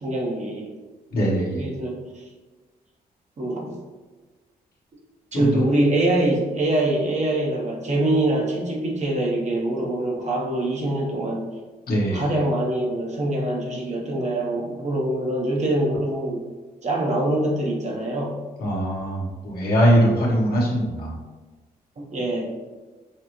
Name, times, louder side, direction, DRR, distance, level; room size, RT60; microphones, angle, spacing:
voice 1, 0.0-0.7 1.6-2.3 3.4-3.7 5.3-11.5 12.1-16.4 16.8-18.4 22.0-22.5, right 1 dB, 45° right, -2 dB, 0.9 m, -24 dB
voice 2, 1.1-1.7 5.3-5.6 11.9-12.4 18.6-21.2, equal, 70° left, -5 dB, 1.2 m, -22 dB
5.8 x 2.0 x 3.0 m, 1.2 s
cardioid pair, 100°, 16 cm